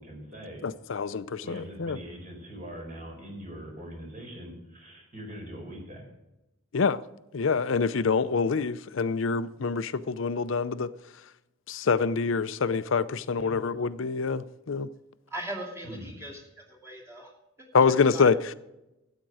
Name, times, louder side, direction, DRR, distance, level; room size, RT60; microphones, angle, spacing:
voice 1, 0.0-0.6 1.4-6.1 13.4-13.6 15.8-16.2, equal, 40° right, 4.6 m, -42 dB
voice 2, 0.6-2.0 6.7-7.0 7.3-10.9 11.7-14.9 17.7-18.5, left 5 dB, 70° left, 0.5 m, -26 dB
voice 3, 15.3-16.4 16.7-17.3 17.8-18.3, right 1 dB, 15° right, 2.6 m, -39 dB
13.0 x 9.0 x 4.8 m
head